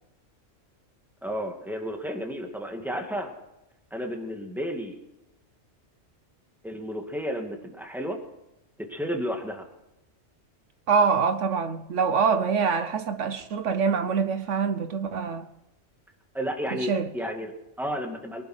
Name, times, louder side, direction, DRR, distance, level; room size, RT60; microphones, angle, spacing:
voice 1, 1.2-3.3 3.9-5.0 6.6-8.2 8.8-9.6 16.3-18.4, equal, ahead, 2.2 m, -32 dB
voice 2, 10.9-15.5 16.8-17.1, right 5 dB, 75° right, 1.2 m, -25 dB
23.5 x 11.5 x 4.5 m
omnidirectional pair, 1.3 m